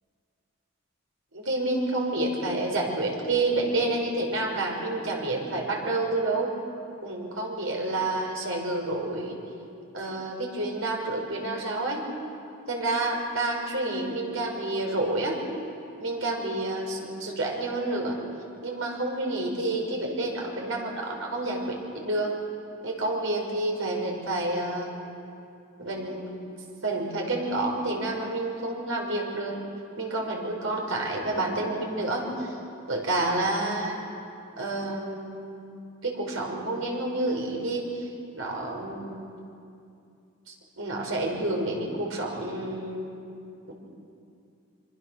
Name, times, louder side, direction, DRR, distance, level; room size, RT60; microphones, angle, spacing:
voice 1, 1.3-6.5 7.0-9.4 9.9-12.1 12.7-15.4 16.0-18.2 18.6-22.3 22.8-24.9 25.8-26.3 26.8-29.6 30.0-32.6 32.9-34.0 34.6-35.8 36.0-38.1 38.4-39.3 40.5-43.1 43.7-43.8, right 2 dB, 75° right, 0 dB, 5.6 m, -29 dB
26.5 x 26.0 x 6.5 m, 2.5 s
head